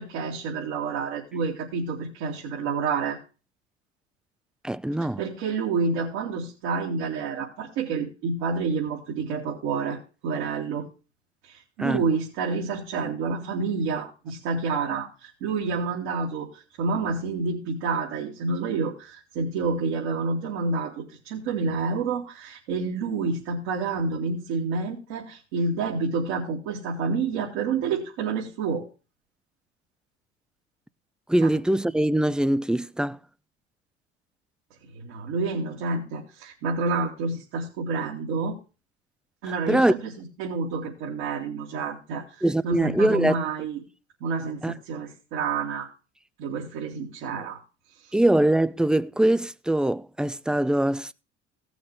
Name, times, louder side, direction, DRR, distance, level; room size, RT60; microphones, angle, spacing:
voice 1, 0.0-3.2 5.2-10.8 11.4-28.8 31.4-31.5 34.9-38.6 39.4-43.8 44.2-45.9 46.4-47.6 48.0-48.1, right 4 dB, 65° right, 3.0 m, -29 dB
voice 2, 4.6-5.2 11.8-12.0 31.3-33.2 39.7-39.9 42.4-43.4 44.6-44.7 48.1-51.1, right 1 dB, ahead, 0.5 m, -22 dB
18.0 x 6.4 x 3.4 m
figure-of-eight pair, 60°, 33 cm